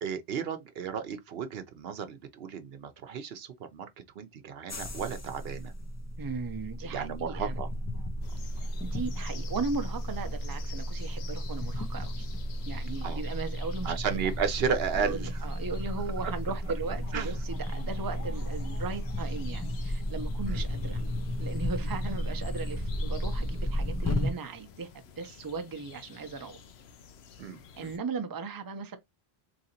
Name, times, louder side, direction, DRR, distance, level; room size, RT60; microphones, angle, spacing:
voice 1, 0.0-3.9 4.2-5.7 6.8-7.7 13.0-13.2 13.8-15.3 16.2-16.3 17.1-17.3 17.7-17.9 18.2-18.3 20.5-20.6 27.4-27.9, right 7 dB, 75° right, 0.9 m, -34 dB
sound 1, 4.7-24.3, equal, 25° left, 0.4 m, -33 dB
voice 2, 6.2-7.6 8.8-12.3 12.7-14.0 15.0-21.0 21.4-24.9 25.2-26.6 27.7-29.0, right 4 dB, 25° right, 0.6 m, -37 dB
sound 2, 8.2-28.0, left 7 dB, 85° left, 0.9 m, -52 dB
3.8 x 3.1 x 2.8 m
omnidirectional pair, 1.0 m